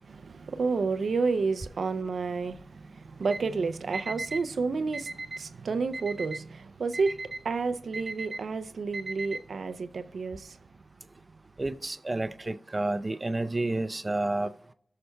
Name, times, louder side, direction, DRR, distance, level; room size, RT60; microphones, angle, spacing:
voice 1, 0.0-10.6, right 4 dB, 85° right, 0.5 m, -30 dB
Alarm, 3.2-3.4 3.9-4.4 4.9-5.4 5.9-6.4 6.9-7.4 7.9-8.4 8.9-9.4, right 2 dB, 65° right, 1.0 m, -36 dB
voice 2, 11.6-14.5, right 2 dB, 35° right, 0.6 m, -30 dB
19.0 x 6.6 x 2.2 m
cardioid pair, 45°, 0 cm